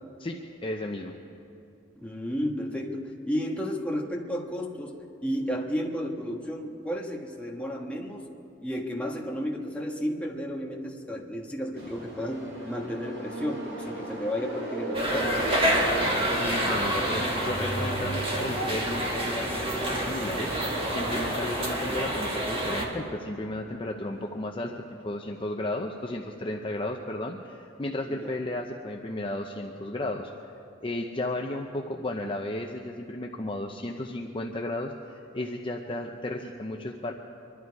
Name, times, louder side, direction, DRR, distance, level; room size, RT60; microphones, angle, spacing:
voice 1, 0.2-1.2 16.4-20.5 20.9-30.3 30.8-37.1, left 1 dB, 30° left, 2 dB, 0.7 m, -34 dB
voice 2, 1.9-4.9 5.2-8.3 8.6-15.3 28.1-28.3, equal, 5° left, -1 dB, 1.5 m, -32 dB
sound 1, 11.7-25.4, right 1 dB, 70° right, 4.6 m, -37 dB
sound 2, 14.9-22.9, right 1 dB, 30° right, 2.0 m, -28 dB
24.5 x 12.0 x 4.8 m, 2.9 s
head